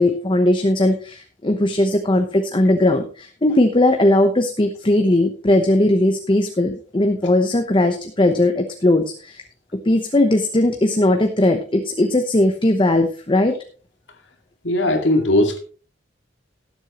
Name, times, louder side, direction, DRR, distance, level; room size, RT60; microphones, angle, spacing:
voice 1, 0.0-9.4 9.8-13.6, left 1 dB, 25° left, 6 dB, 0.9 m, -18 dB
voice 2, 14.6-15.6, left 1 dB, 90° left, 4 dB, 2.3 m, -18 dB
18.0 x 8.0 x 3.0 m, 0.38 s
head